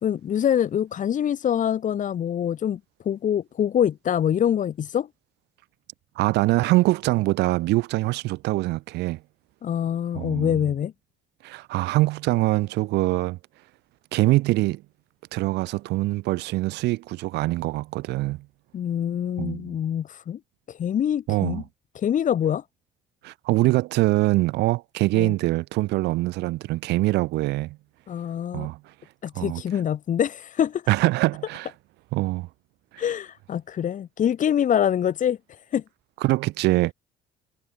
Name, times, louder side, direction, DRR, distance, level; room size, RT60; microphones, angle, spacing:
voice 1, 0.0-5.1 9.6-10.9 18.7-20.4 20.7-21.6 21.9-22.6 25.1-25.3 28.1-28.7 29.2-30.9 33.0-35.8, left 9 dB, 50° left, 2.0 m, -25 dB
voice 2, 6.2-9.2 10.1-10.6 11.4-13.4 14.1-14.8 15.3-18.4 19.4-19.7 21.3-21.6 23.2-27.8 28.5-28.8 29.4-29.6 30.9-31.7 32.1-32.5 32.9-33.0 36.2-36.9, right 19 dB, 85° right, 1.2 m, -23 dB
cardioid pair, 110°, 17 cm